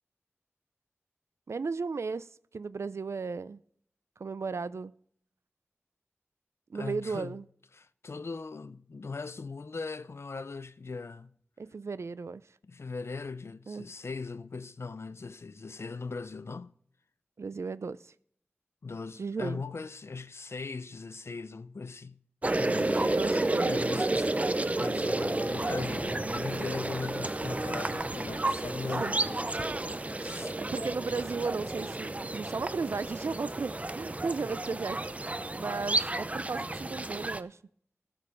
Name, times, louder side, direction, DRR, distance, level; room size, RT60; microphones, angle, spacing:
voice 1, 1.5-2.3 2.5-3.6 4.2-4.9 6.7-7.5 11.6-12.4 13.7-13.9 17.4-18.1 19.2-19.6 23.0-23.9 28.9-29.2 30.6-37.6, right 4 dB, 85° right, 0.4 m, -35 dB
voice 2, 6.7-7.4 7.7-11.3 12.6-16.7 18.8-22.2 22.5-23.2 23.6-24.5 24.8-29.4 30.1-30.6, left 4 dB, 70° left, 0.4 m, -39 dB
sound 1, 22.4-37.4, right 2 dB, 30° right, 0.5 m, -31 dB
14.0 x 5.3 x 6.3 m
wide cardioid pair, 65°, 5 cm